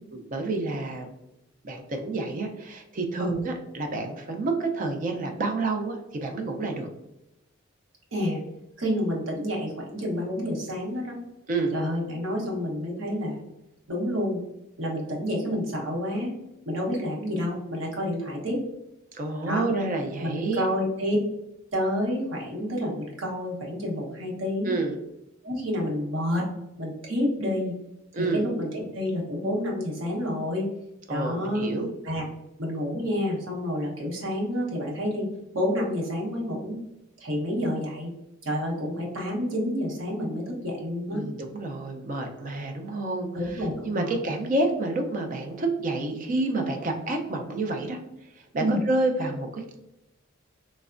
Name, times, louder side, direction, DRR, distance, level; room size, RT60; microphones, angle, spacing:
voice 1, 0.1-1.1 1.6-6.9 11.5-11.7 19.1-20.6 24.6-24.9 28.1-28.4 31.1-31.9 41.1-48.0 48.5-49.8, right 2 dB, 40° right, 4 dB, 0.4 m, -29 dB
voice 2, 8.1-8.4 8.8-11.2 11.7-13.4 13.9-14.4 14.8-16.3 16.7-18.6 19.5-19.7 20.2-21.2 21.7-24.8 25.4-26.5 26.8-27.7 28.2-30.6 31.1-31.7 32.0-32.3 32.6-35.3 35.5-36.8 37.2-38.1 38.4-41.2 43.3-44.1 48.6-48.8, equal, 70° right, -2 dB, 0.9 m, -29 dB
3.3 x 2.1 x 2.4 m, 0.91 s
head